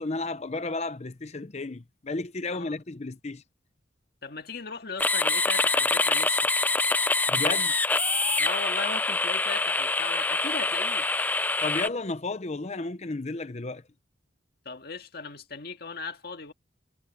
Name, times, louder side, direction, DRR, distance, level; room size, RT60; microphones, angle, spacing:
voice 1, 0.0-3.4 7.3-7.7 11.6-13.8, left 3 dB, 35° left, 0.8 m, -33 dB
voice 2, 4.2-6.6 8.4-11.1 14.7-16.5, left 4 dB, 55° left, 1.9 m, -37 dB
sound 1, 5.0-11.9, left 3 dB, 10° left, 0.3 m, -25 dB
head